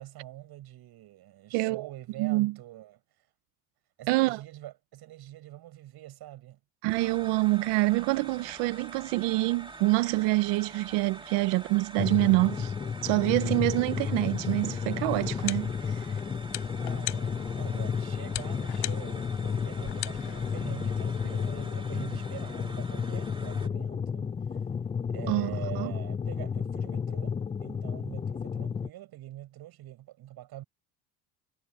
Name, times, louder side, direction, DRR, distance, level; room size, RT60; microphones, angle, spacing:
voice 1, 0.0-3.0 4.0-6.6 16.7-24.3 25.1-30.6, right 14 dB, 60° right, 7.9 m, -45 dB
voice 2, 1.5-1.9 2.2-2.5 4.1-4.4 6.8-12.7 13.0-16.0 25.3-25.9, right 21 dB, 80° right, 0.9 m, -26 dB
sound 1, 6.9-23.7, right 2 dB, 10° right, 2.7 m, -47 dB
sound 2, 12.0-28.9, left 6 dB, 15° left, 0.4 m, -32 dB
sound 3, 15.1-21.7, left 17 dB, 65° left, 7.3 m, -41 dB
supercardioid pair, 105°, 42 cm